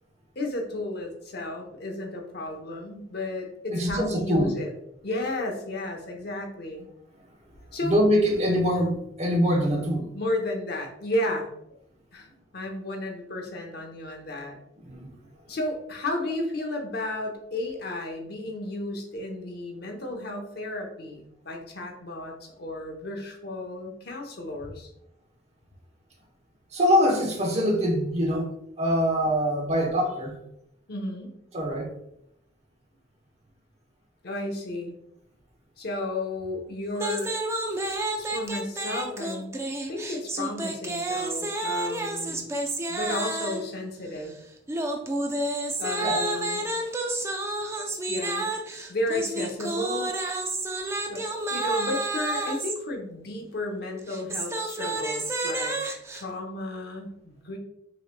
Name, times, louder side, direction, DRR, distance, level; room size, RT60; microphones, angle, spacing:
voice 1, 0.4-4.7 5.0-6.9 7.7-8.0 10.1-11.5 12.1-12.3 12.5-14.6 15.5-24.9 30.9-31.3 34.2-34.9 35.8-37.3 38.2-39.5 39.9-42.5 42.9-44.4 45.8-46.6 48.1-48.5 48.9-50.1 51.1-55.8 56.1-57.6, left 1 dB, 60° left, 2 dB, 0.8 m, -33 dB
voice 2, 3.7-4.5 7.8-10.1 14.9-15.1 26.7-28.5 28.8-30.4 31.5-31.9 46.0-46.2, equal, 35° right, 0 dB, 1.0 m, -24 dB
sound 1, 36.9-43.7 44.7-52.8 54.0-56.2, right 2 dB, 15° right, 0.4 m, -30 dB
6.2 x 3.0 x 2.2 m, 0.78 s
head